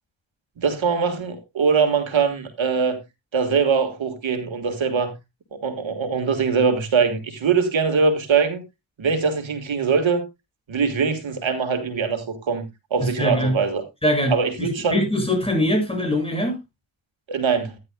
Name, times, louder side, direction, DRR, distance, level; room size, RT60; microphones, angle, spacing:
voice 1, 0.6-3.0 3.3-5.1 5.5-8.6 9.0-10.2 10.7-12.6 12.9-13.8 14.3-15.0 17.3-17.7, right 5 dB, 80° right, 1.7 m, -22 dB
voice 2, 13.0-13.5 14.0-16.6, left 1 dB, 10° left, 7.1 m, -22 dB
14.0 x 10.0 x 2.2 m
cardioid pair, 65°, 46 cm